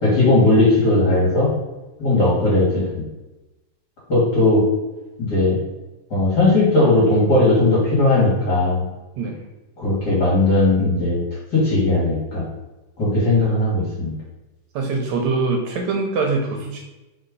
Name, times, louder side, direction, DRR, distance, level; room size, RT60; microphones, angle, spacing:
voice 1, 0.0-1.5 2.0-3.1 4.1-4.6 5.2-5.6 6.1-8.8 9.8-11.2 11.5-12.4 13.0-14.1, left 2 dB, 35° left, -6 dB, 2.2 m, -17 dB
voice 2, 14.8-16.8, right 3 dB, 75° right, 2 dB, 1.9 m, -23 dB
4.4 x 4.3 x 5.3 m, 1.1 s
omnidirectional pair, 3.6 m